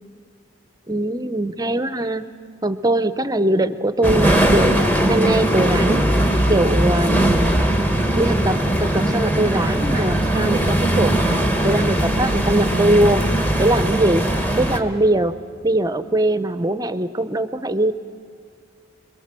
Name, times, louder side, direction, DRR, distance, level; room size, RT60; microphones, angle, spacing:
voice 1, 0.9-2.2 2.6-6.0 6.5-7.6 8.1-13.2 13.6-14.2 14.5-15.4 15.6-17.9, right 1 dB, 20° right, 13 dB, 0.6 m, -21 dB
sound 1, 4.0-14.8, right 1 dB, 10° left, 1.3 m, -19 dB
27.5 x 22.0 x 7.5 m, 2.2 s
head